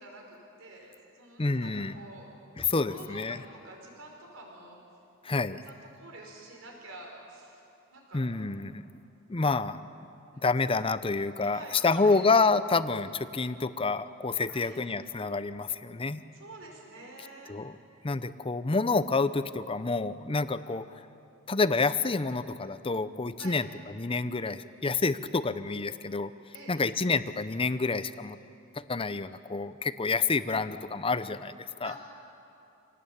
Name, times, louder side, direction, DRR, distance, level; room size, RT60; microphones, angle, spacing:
voice 1, 0.0-2.3 2.8-4.8 5.7-7.6 7.9-8.3 11.4-12.2 14.5-14.8 16.3-17.5 23.4-23.6 26.5-26.9 31.8-32.0, right 2 dB, 65° right, 0 dB, 5.2 m, -47 dB
voice 2, 1.4-2.0 2.6-3.4 5.2-5.6 8.1-8.8 9.3-9.9 10.4-16.2 17.5-17.8 18.0-21.0 21.5-26.3 26.7-28.4 28.7-32.0, left 3 dB, 25° left, 13 dB, 0.6 m, -28 dB
27.0 x 18.5 x 8.7 m, 2.7 s
head